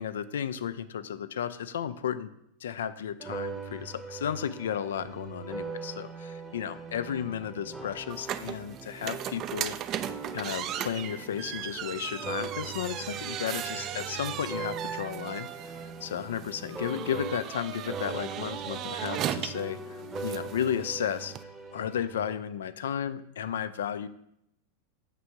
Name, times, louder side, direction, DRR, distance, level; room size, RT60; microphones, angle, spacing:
voice 1, 0.0-2.3 2.6-9.8 10.3-21.3 21.7-24.1, left 9 dB, 60° left, 14 dB, 0.3 m, -34 dB
sound 1, 3.2-17.6 17.9-22.3, right 4 dB, 10° right, 0.8 m, -41 dB
sound 2, 8.1-21.4, right 11 dB, 35° right, 0.3 m, -37 dB
6.6 x 3.4 x 5.7 m, 0.78 s
figure-of-eight pair, 90°, 0 cm